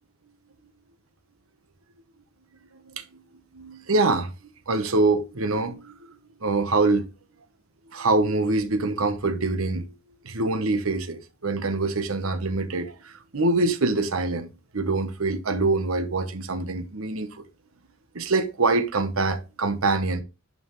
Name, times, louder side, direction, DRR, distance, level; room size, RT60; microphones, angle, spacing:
voice 1, 3.5-4.3 4.7-6.0 6.4-7.1 7.9-9.9 10.2-14.5 14.7-17.4 18.1-20.2, right 3 dB, 80° right, 1.1 m, -24 dB
10.5 x 5.5 x 3.1 m
head